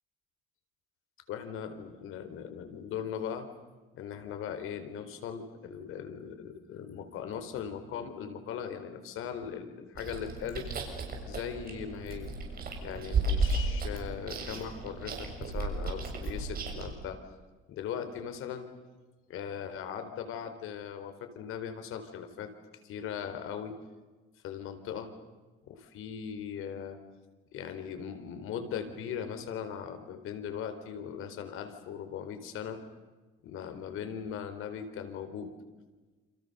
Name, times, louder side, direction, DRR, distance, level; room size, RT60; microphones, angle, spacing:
voice 1, 1.3-3.5 3.9-10.7 11.3-12.3 12.8-17.2 17.7-18.7 19.3-22.5 22.8-23.8 24.4-25.1 25.6-27.0 27.5-32.8 33.4-35.5, left 8 dB, 80° left, 8 dB, 4.2 m, -39 dB
Chewing mastication, 10.0-16.9, right 3 dB, 45° right, 7.2 m, -34 dB
29.0 x 29.0 x 6.9 m, 1.2 s
cardioid pair, 135°, 21 cm